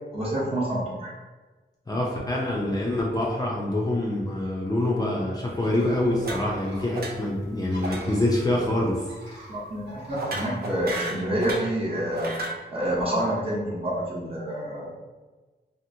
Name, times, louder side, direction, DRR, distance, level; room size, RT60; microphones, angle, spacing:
voice 1, 0.1-1.1 9.5-12.4 12.7-14.9, right 1 dB, 35° right, -6 dB, 0.9 m, -28 dB
voice 2, 1.9-9.5, left 1 dB, 20° left, -4 dB, 0.4 m, -26 dB
sound 1, 5.5-11.1, equal, 75° right, 1.1 m, -47 dB
sound 2, 6.2-6.7 6.9-7.4 7.8-8.0 8.3-8.6 10.2-11.7 12.1-12.6, right 2 dB, 60° right, 0.5 m, -33 dB
2.8 x 2.5 x 2.6 m, 1.3 s
wide cardioid pair, 135°, 18 cm